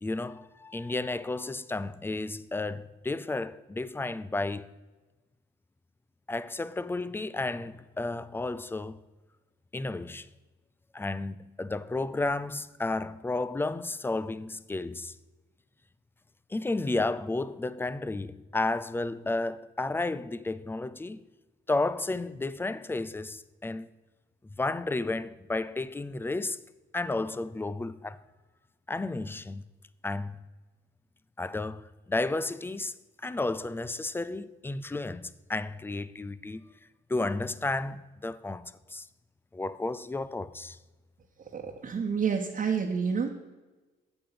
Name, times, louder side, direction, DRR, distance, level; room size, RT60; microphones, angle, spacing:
voice 1, 0.0-4.7 6.3-9.0 9.7-10.3 10.9-15.1 16.5-21.2 21.7-23.9 24.6-26.6 26.9-28.2 28.9-29.6 30.0-30.4 31.4-32.9 33.2-36.6 37.1-39.1 39.5-40.8, left 2 dB, 10° left, 0.5 m, -32 dB
voice 2, 41.5-43.3, right 6 dB, 45° right, 1.2 m, -29 dB
8.9 x 7.6 x 6.0 m
cardioid pair, 90°, 20 cm